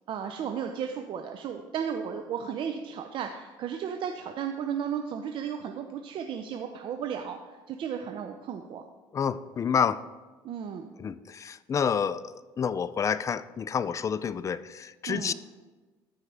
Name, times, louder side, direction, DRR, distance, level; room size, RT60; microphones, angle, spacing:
voice 1, 0.1-8.8 10.4-10.9 15.1-15.3, right 8 dB, 55° right, 5 dB, 0.6 m, -34 dB
voice 2, 9.1-10.0 11.0-15.3, left 7 dB, 30° left, 16 dB, 0.4 m, -29 dB
13.0 x 4.9 x 3.4 m, 1.2 s
supercardioid pair, 90°, 10 cm